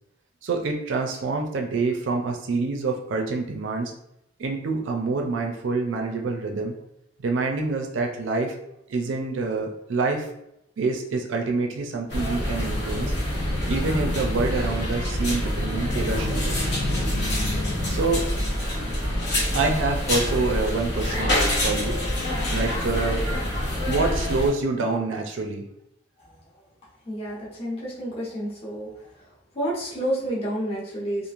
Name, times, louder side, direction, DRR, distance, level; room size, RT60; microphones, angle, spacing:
voice 1, 0.4-3.9 4.4-6.8 7.2-8.6 8.9-10.3 10.8-13.1 13.7-16.6 17.9-18.3 19.5-21.3 21.6-22.0 22.5-23.2 23.9-25.6, right 3 dB, 75° right, 2 dB, 0.4 m, -26 dB
sound 1, 12.1-24.5, left 1 dB, 60° left, 0.9 m, -26 dB
voice 2, 27.0-28.9 29.5-31.3, right 1 dB, 30° left, -7 dB, 0.9 m, -29 dB
3.0 x 2.5 x 2.4 m, 0.79 s
head